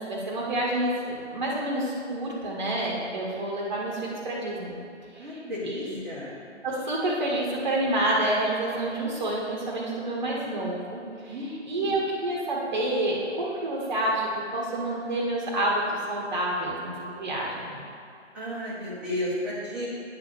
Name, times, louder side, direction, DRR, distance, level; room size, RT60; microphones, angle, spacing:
voice 1, 0.0-4.8 5.1-6.0 6.6-17.8, right 1 dB, 25° right, -5 dB, 1.3 m, -28 dB
voice 2, 5.2-6.3 11.3-11.9 18.3-19.9, left 1 dB, 5° right, -12 dB, 1.2 m, -33 dB
9.2 x 4.8 x 6.7 m, 2.5 s
figure-of-eight pair, 155°, 36 cm